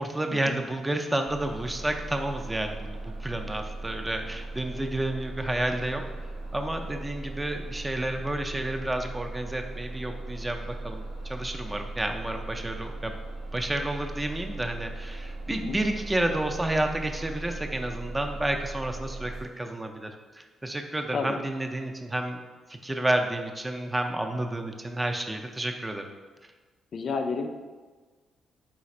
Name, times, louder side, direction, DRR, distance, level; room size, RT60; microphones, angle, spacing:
voice 1, 0.0-6.0 6.5-13.2 13.5-22.4 22.7-26.1, right 1 dB, 20° right, 4 dB, 0.4 m, -30 dB
Bus, 1.2-19.4, right 2 dB, 85° right, 1.1 m, -38 dB
voice 2, 26.9-27.5, left 4 dB, 55° left, 5 dB, 0.3 m, -31 dB
3.9 x 2.4 x 4.1 m, 1.4 s
hypercardioid pair, 45°, 0 cm